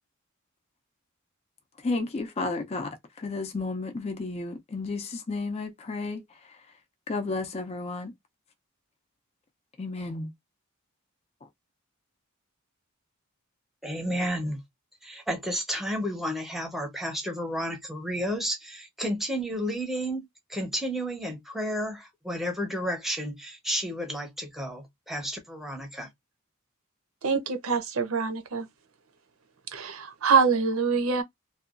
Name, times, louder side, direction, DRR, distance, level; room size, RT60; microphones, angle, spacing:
voice 1, 1.8-6.2 7.1-8.1 9.8-10.3, left 3 dB, 30° left, 0.5 m, -32 dB
voice 2, 13.8-14.6 15.0-26.1, equal, ahead, 0.7 m, -32 dB
voice 3, 27.2-28.7 29.7-31.2, right 5 dB, 75° right, 0.7 m, -25 dB
2.7 x 2.3 x 2.4 m
head